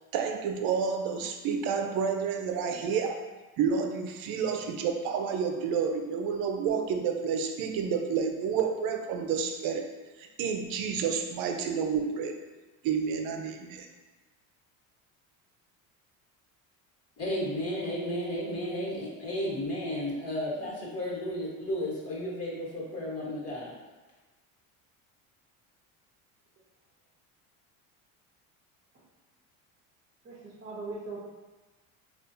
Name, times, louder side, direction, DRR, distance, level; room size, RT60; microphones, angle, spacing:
voice 1, 0.1-3.3 3.6-9.9 10.2-12.3 12.8-13.9, right 6 dB, 60° right, 4 dB, 0.6 m, -30 dB
voice 2, 17.2-23.8, left 1 dB, 35° left, -5 dB, 1.5 m, -33 dB
voice 3, 30.2-31.2, right 3 dB, 30° right, -7 dB, 0.8 m, -40 dB
3.4 x 2.5 x 2.7 m, 1.2 s
supercardioid pair, 90°, 41 cm